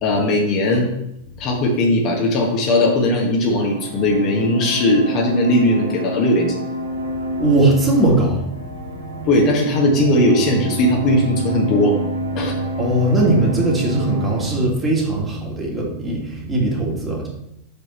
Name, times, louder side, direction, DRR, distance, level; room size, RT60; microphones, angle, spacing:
voice 1, 0.0-0.9 1.4-6.6 9.3-12.0 12.3-12.5, left 1 dB, 35° left, 0 dB, 1.4 m, -18 dB
sound 1, 3.4-14.6, equal, 80° right, 1.2 m, -27 dB
voice 2, 7.3-9.3 12.4-12.5 12.8-17.3, right 2 dB, 15° right, -3 dB, 2.2 m, -20 dB
6.3 x 5.4 x 4.3 m, 0.83 s
figure-of-eight pair, 90°, 0 cm